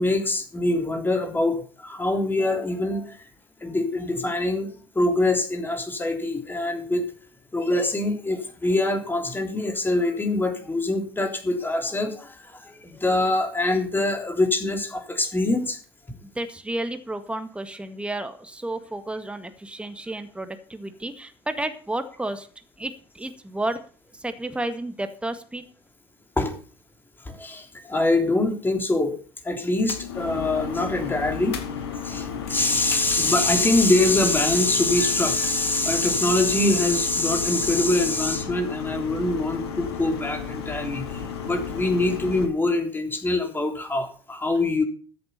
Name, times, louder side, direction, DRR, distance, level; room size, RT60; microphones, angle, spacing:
voice 1, 0.0-3.3 3.6-7.0 7.5-15.8 26.4-26.5 27.2-29.1 29.4-31.6 32.0-44.8, left 2 dB, 15° left, 4 dB, 3.3 m, -24 dB
voice 2, 16.1-22.5 22.8-23.8 24.1-25.6, right 1 dB, 10° right, 9 dB, 1.9 m, -32 dB
sound 1, 29.8-42.5, left 6 dB, 75° left, 2.2 m, -33 dB
13.5 x 7.9 x 6.9 m, 0.41 s
figure-of-eight pair, 65°, 14 cm